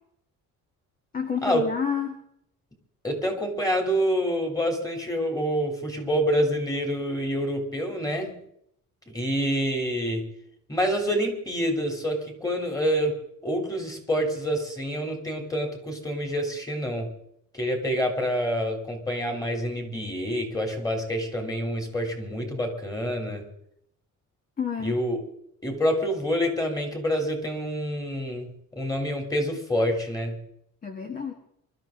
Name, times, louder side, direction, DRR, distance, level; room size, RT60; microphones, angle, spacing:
voice 1, 1.1-2.2 24.6-25.0 30.8-31.3, left 7 dB, 25° left, 4 dB, 1.8 m, -29 dB
voice 2, 3.0-8.4 9.1-10.3 10.7-13.2 13.4-17.1 17.5-23.5 24.8-25.2 25.6-30.4, equal, 10° left, 3 dB, 3.5 m, -27 dB
24.0 x 13.0 x 3.9 m, 0.70 s
cardioid pair, 150°, 32 cm